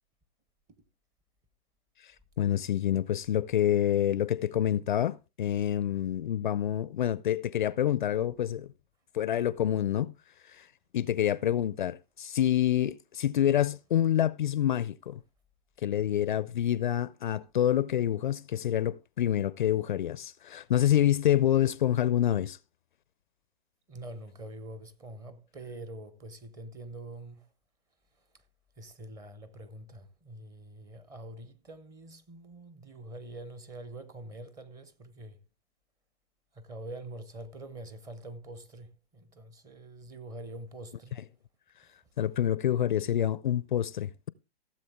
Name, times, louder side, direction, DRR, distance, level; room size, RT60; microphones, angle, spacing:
voice 1, 2.4-8.7 9.1-10.1 10.5-10.7 10.9-15.2 15.8-22.6 42.2-44.3, left 11 dB, 50° left, 0.4 m, -27 dB
voice 2, 23.9-27.5 28.1-28.4 28.8-35.4 36.5-41.2 41.9-42.0, right 1 dB, 10° right, 0.6 m, -45 dB
16.0 x 7.5 x 3.5 m
hypercardioid pair, 135°, 33 cm